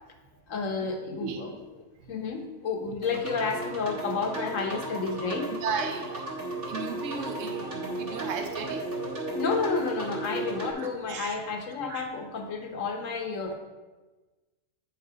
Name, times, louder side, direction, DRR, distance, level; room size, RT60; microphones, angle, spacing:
voice 1, 0.5-1.5 2.1-5.5 9.3-13.5, left 4 dB, 80° left, 4 dB, 1.4 m, -31 dB
sound 1, 3.0-10.7, right 2 dB, 45° right, 1.5 m, -35 dB
voice 2, 5.5-8.9 10.8-11.3 11.9-12.1, right 5 dB, 75° right, 6 dB, 1.1 m, -36 dB
8.5 x 4.7 x 4.8 m, 1.2 s
omnidirectional pair, 1.4 m